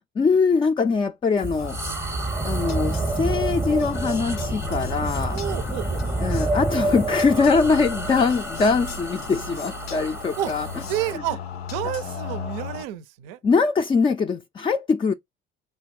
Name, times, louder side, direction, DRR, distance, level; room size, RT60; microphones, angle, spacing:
voice 1, 0.2-1.8 2.4-5.4 6.2-10.7 11.8-12.6 13.4-15.1, left 4 dB, 20° left, 0.3 m, -22 dB
sound 1, 1.4-11.2, right 2 dB, 10° right, 0.7 m, -28 dB
sound 2, 1.6-12.8, left 4 dB, 90° left, 0.5 m, -36 dB
voice 2, 5.3-6.2 10.4-10.5 10.9-11.4 11.7-13.4, right 12 dB, 75° right, 0.5 m, -30 dB
3.5 x 3.3 x 3.2 m
hypercardioid pair, 55°, 30 cm